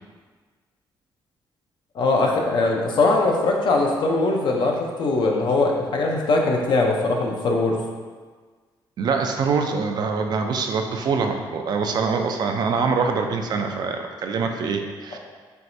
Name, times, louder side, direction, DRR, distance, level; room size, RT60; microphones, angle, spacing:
voice 1, 2.0-7.8, left 3 dB, 60° left, 1 dB, 0.6 m, -21 dB
voice 2, 9.0-15.2, right 5 dB, 50° right, 4 dB, 0.4 m, -24 dB
4.6 x 3.1 x 2.6 m, 1.5 s
cardioid pair, 130°, 9 cm